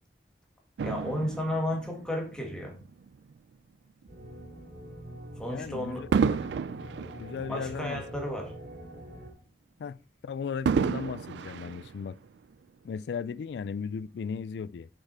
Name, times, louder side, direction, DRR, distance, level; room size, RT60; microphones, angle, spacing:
voice 1, 0.8-2.8 5.4-6.1 7.5-8.5, left 1 dB, 5° left, 1.6 m, -33 dB
Fireworks, 0.8-3.4 4.0-4.2 6.1-8.6 9.0-9.1 10.7-12.5 13.3-13.4, right 6 dB, 80° right, 0.3 m, -31 dB
sound 1, 4.1-9.3, right 1 dB, 55° right, 3.4 m, -45 dB
voice 2, 5.5-6.5 7.2-8.0 9.8-10.0 10.2-12.2 12.8-14.9, left 6 dB, 70° left, 0.3 m, -36 dB
6.6 x 6.0 x 4.1 m
head